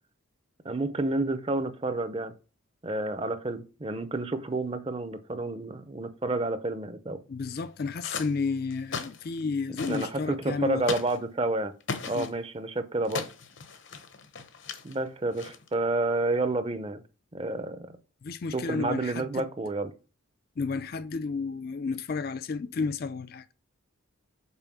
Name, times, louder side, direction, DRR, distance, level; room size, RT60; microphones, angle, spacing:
voice 1, 0.6-2.3 2.8-7.2 9.9-11.7 12.0-13.3 14.8-17.0 17.3-18.0 18.5-19.9, right 2 dB, 25° right, 0.6 m, -30 dB
voice 2, 7.3-10.8 12.1-12.3 18.2-19.4 20.6-23.4, left 4 dB, 50° left, 0.4 m, -32 dB
sound 1, 7.5-8.3 8.7-9.4 9.8-10.1 10.8-11.2 11.8-12.3 13.1-15.0 15.4-15.7, left 5 dB, 65° left, 0.8 m, -37 dB
5.6 x 4.4 x 6.0 m
head